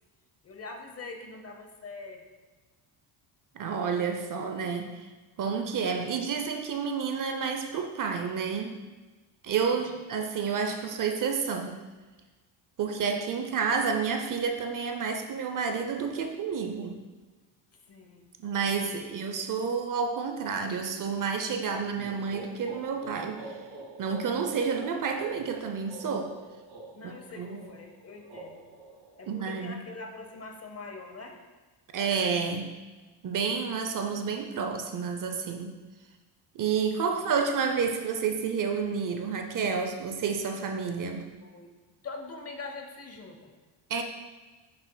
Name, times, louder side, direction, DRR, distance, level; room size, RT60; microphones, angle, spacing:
voice 1, 0.4-2.2 9.7-9.9 17.7-18.3 18.9-19.2 26.9-28.7 29.2-31.4 37.1-37.3 41.4-41.7 42.0-43.5, left 3 dB, 30° left, 4 dB, 0.7 m, -43 dB
voice 2, 3.5-4.9 5.4-8.8 9.4-11.8 12.8-17.0 18.4-23.4 24.0-26.3 27.0-27.6 29.3-29.8 31.9-32.7 33.2-35.7 36.5-41.3 43.9-44.0, right 5 dB, 40° right, 5 dB, 0.6 m, -30 dB
sound 1, 21.9-29.7, right 2 dB, 70° right, 1.9 m, -46 dB
7.3 x 6.0 x 2.2 m, 1.3 s
cardioid pair, 110°, 49 cm